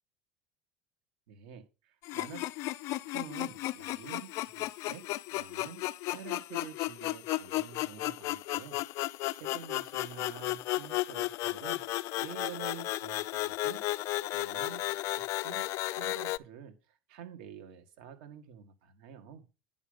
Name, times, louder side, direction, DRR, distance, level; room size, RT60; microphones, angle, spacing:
voice 1, 1.3-2.4 3.0-11.8 12.2-13.9 14.3-19.5, right 9 dB, 75° right, 6 dB, 1.9 m, -48 dB
sound 1, 2.0-16.4, left 17 dB, 60° left, 0.4 m, -34 dB
9.7 x 5.5 x 5.4 m, 0.30 s
hypercardioid pair, 80°, 6 cm